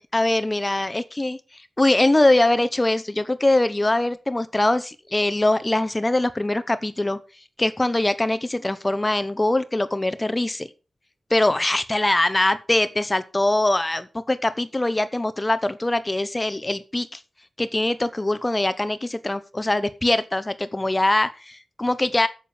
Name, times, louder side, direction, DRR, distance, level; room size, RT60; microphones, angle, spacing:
voice 1, 0.0-1.4 1.8-7.2 7.6-10.7 11.3-17.2 17.6-22.3, left 2 dB, 15° left, 13 dB, 0.8 m, -22 dB
9.1 x 7.4 x 7.0 m, 0.33 s
wide cardioid pair, 150°, 0 cm